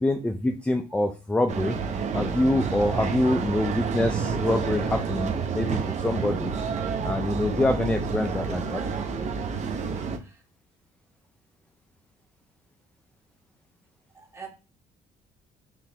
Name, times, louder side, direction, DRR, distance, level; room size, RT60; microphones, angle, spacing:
voice 1, 0.0-1.8 2.1-6.5 7.0-8.8, left 1 dB, 5° left, 6 dB, 0.4 m, -25 dB
sound 1, 1.5-10.2, right 5 dB, 45° right, 0.7 m, -29 dB
voice 2, 9.9-10.4 14.1-14.5, right 6 dB, 15° right, 0 dB, 1.4 m, -45 dB
3.8 x 3.2 x 2.9 m, 0.32 s
cardioid pair, 110°, 17 cm